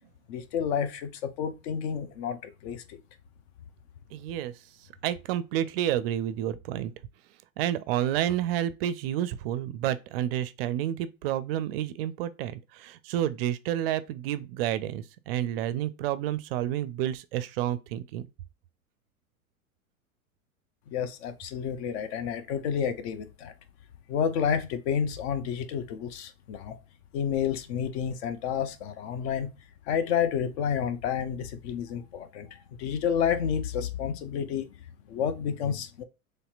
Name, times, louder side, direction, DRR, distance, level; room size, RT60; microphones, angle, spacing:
voice 1, 0.3-3.0 20.9-23.5 24.1-26.8 27.1-29.5 29.9-34.7 35.1-36.0, left 8 dB, 50° left, 0.7 m, -30 dB
voice 2, 4.1-4.5 5.0-6.9 7.6-18.3, right 12 dB, 45° right, 0.4 m, -30 dB
4.2 x 3.2 x 2.3 m
figure-of-eight pair, 90°, 44 cm